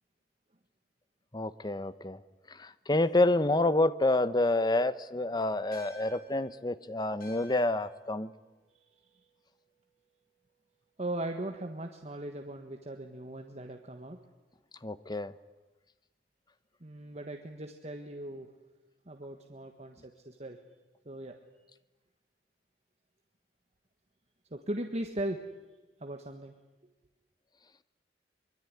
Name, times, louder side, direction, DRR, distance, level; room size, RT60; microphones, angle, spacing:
voice 1, 1.3-2.2 2.6-8.3 14.8-15.3, left 2 dB, 25° left, 14 dB, 0.9 m, -28 dB
sound 1, 5.7-10.4, left 3 dB, 55° left, 7.5 m, -57 dB
voice 2, 11.0-14.2 16.8-18.5 19.1-20.6 21.0-21.4 24.5-25.4 26.0-26.5, right 1 dB, 40° right, 4 dB, 1.5 m, -38 dB
24.5 x 22.5 x 9.7 m, 1.1 s
head